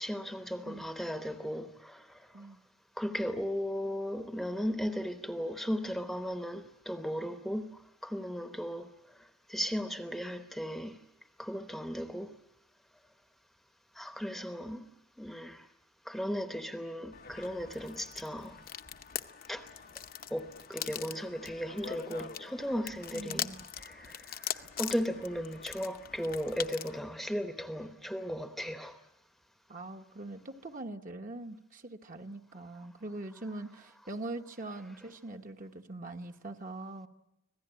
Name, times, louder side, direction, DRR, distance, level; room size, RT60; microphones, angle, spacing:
voice 1, 0.0-2.5 3.0-8.9 9.2-11.0 11.4-12.3 14.0-14.9 15.2-15.7 16.1-18.6 19.5-19.7 20.3-29.0, equal, ahead, 0.9 m, -36 dB
sound 1, 17.1-27.0, left 9 dB, 45° left, 0.8 m, -42 dB
voice 2, 23.1-23.6 29.7-37.1, right 2 dB, 40° right, 1.2 m, -42 dB
26.0 x 17.0 x 10.0 m
head